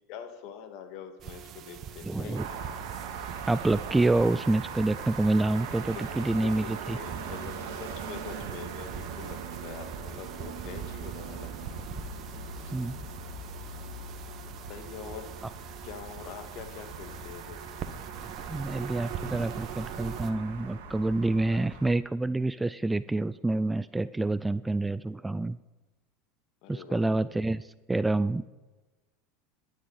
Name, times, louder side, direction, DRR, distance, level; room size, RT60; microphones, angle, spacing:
voice 1, 0.1-2.6 5.9-11.8 12.6-12.7 14.7-15.3 15.8-17.6 21.5-22.0 26.6-27.1, left 7 dB, 60° left, 7 dB, 2.1 m, -44 dB
sound 1, 1.2-20.3, right 8 dB, 45° right, 1.5 m, -43 dB
voice 2, 2.0-2.4 3.5-7.0 12.7-13.0 18.5-25.6 26.7-27.6 27.9-28.5, right 2 dB, 10° right, 16 dB, 0.5 m, -27 dB
sound 2, 2.3-21.9, right 5 dB, 65° right, 2.5 m, -40 dB
26.0 x 11.0 x 4.3 m, 1.2 s
hypercardioid pair, 85°, 0 cm